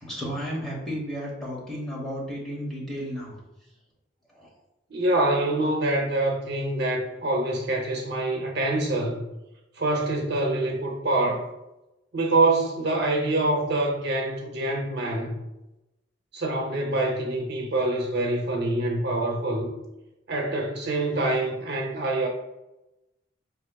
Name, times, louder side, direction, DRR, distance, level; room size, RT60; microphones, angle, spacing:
voice 1, 0.0-3.3 4.4-4.5, equal, ahead, -5 dB, 1.0 m, -33 dB
voice 2, 4.9-9.2 9.8-11.4 12.1-15.4 16.3-19.7 20.3-22.3, right 2 dB, 60° right, 1 dB, 0.6 m, -25 dB
5.0 x 2.8 x 2.2 m, 0.96 s
head